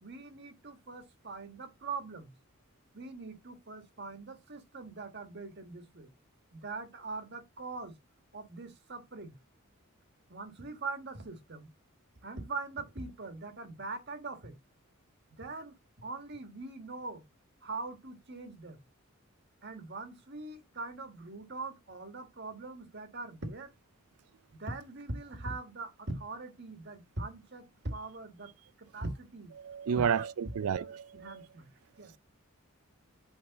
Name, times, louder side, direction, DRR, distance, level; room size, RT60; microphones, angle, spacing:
voice 1, 0.0-2.3 2.9-6.1 6.5-7.9 8.3-9.3 10.3-11.7 12.2-14.5 15.3-17.2 17.6-18.8 19.6-23.7 24.5-28.5 28.8-29.5 29.9-30.3 30.7-31.7 32.0-32.1, right 3 dB, 50° right, 1.5 m, -42 dB
voice 2, 29.6-31.4, right 7 dB, 85° right, 0.4 m, -31 dB
8.4 x 4.7 x 4.0 m
head